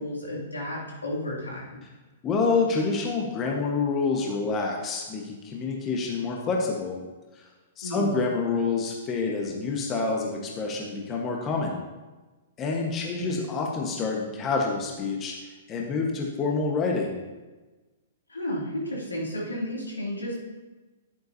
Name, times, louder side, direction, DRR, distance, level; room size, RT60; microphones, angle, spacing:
voice 1, 0.0-1.8 7.8-8.1 13.0-13.4 18.3-20.4, left 1 dB, 85° left, -4 dB, 2.9 m, -33 dB
voice 2, 2.2-7.0 7.8-11.8 12.6-15.3 15.7-17.2, left 4 dB, 25° left, 0 dB, 1.3 m, -27 dB
10.5 x 9.0 x 2.8 m, 1.2 s
figure-of-eight pair, 110°, 0 cm